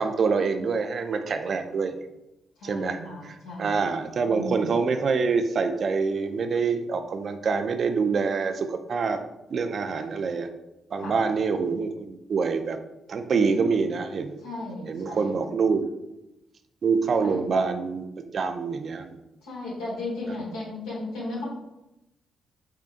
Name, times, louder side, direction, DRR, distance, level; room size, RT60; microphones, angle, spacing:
voice 1, 0.0-2.0 2.6-3.0 3.2-9.2 9.5-10.5 10.9-12.8 13.1-14.4 14.9-15.8 16.8-18.1 18.3-19.2, right 5 dB, 60° right, 8 dB, 0.4 m, -26 dB
voice 2, 2.6-3.8 4.3-4.7 11.0-11.2 14.4-15.4 17.2-17.5 19.4-21.4, left 2 dB, 90° left, -5 dB, 1.3 m, -35 dB
3.7 x 3.6 x 2.5 m, 0.92 s
supercardioid pair, 50°, 0 cm